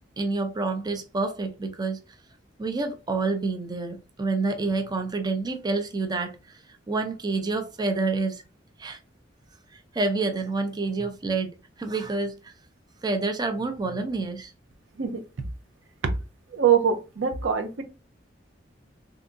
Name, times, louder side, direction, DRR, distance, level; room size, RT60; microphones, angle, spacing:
voice 1, 0.2-2.0 2.6-6.6 6.9-8.4 8.8-9.0 9.7-12.5 13.0-14.5, right 3 dB, 20° right, 0.4 m, -28 dB
voice 2, 16.5-17.8, right 8 dB, 85° right, 0.6 m, -23 dB
3.4 x 2.7 x 2.5 m
head